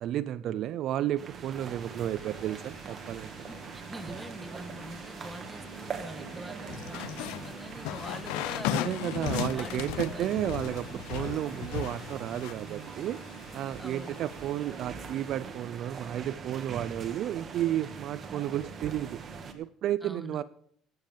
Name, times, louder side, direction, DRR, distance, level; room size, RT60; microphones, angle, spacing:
voice 1, 0.0-3.5 8.7-13.2 13.5-19.2 19.5-20.4, right 12 dB, 45° right, 15 dB, 0.4 m, -32 dB
sound 1, 1.2-19.5, right 5 dB, 30° right, 1.4 m, -42 dB
sound 2, 1.3-15.8, left 5 dB, 45° left, 2.5 m, -54 dB
voice 2, 3.4-10.4 13.8-14.2 20.0-20.4, equal, 5° right, 11 dB, 0.7 m, -44 dB
sound 3, 6.7-12.5, left 15 dB, 80° left, 0.5 m, -35 dB
19.0 x 7.7 x 5.2 m, 0.65 s
cardioid pair, 155°, 0 cm